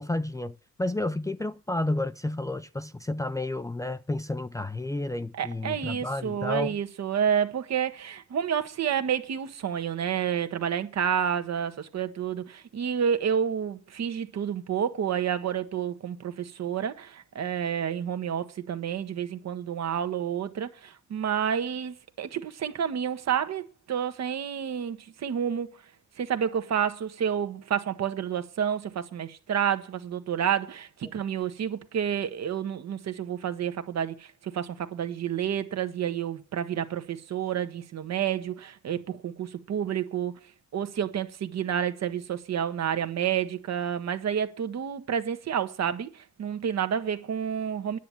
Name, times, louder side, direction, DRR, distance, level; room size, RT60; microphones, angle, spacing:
voice 1, 0.0-6.8, left 1 dB, 10° left, 0.6 m, -31 dB
voice 2, 5.3-25.7 26.2-40.3 40.7-48.0, right 8 dB, 60° right, 1.5 m, -29 dB
10.5 x 7.2 x 9.0 m
cardioid pair, 90°, 30 cm